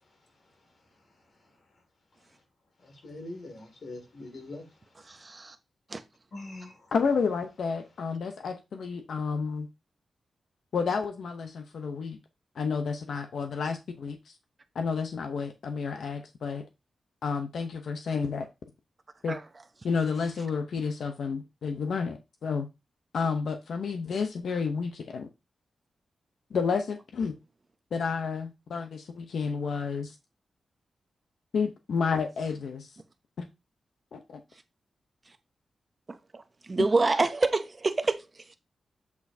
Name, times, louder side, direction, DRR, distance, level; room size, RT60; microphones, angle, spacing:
voice 1, 2.8-4.6 6.3-6.8, left 2 dB, 55° left, 2.2 m, -42 dB
voice 2, 5.0-5.6 5.9-6.0 19.3-19.4 36.1-38.6, right 3 dB, 30° right, 0.6 m, -28 dB
voice 3, 6.9-9.7 10.7-12.2 12.6-14.3 14.7-16.6 17.2-18.5 19.2-19.4 19.8-22.7 23.1-25.3 26.5-27.4 27.9-30.1 31.5-32.9 33.4-33.5 34.1-34.4, left 5 dB, 75° left, 0.7 m, -30 dB
8.1 x 4.6 x 2.7 m
wide cardioid pair, 130°, 0 cm